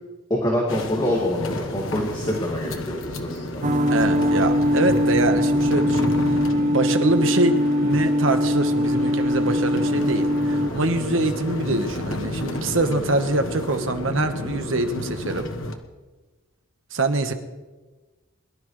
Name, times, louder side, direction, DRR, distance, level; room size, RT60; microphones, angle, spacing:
voice 1, 0.3-3.6 6.5-6.7, left 1 dB, 20° left, -3 dB, 2.1 m, -26 dB
sound 1, 0.7-15.7, left 1 dB, 85° left, 1.3 m, -32 dB
sound 2, 3.6-10.7, left 1 dB, 40° right, 0.5 m, -21 dB
voice 2, 3.9-6.4 6.7-15.5 16.9-17.3, right 2 dB, 80° right, 7 dB, 1.3 m, -24 dB
22.5 x 12.5 x 3.2 m, 1.2 s
head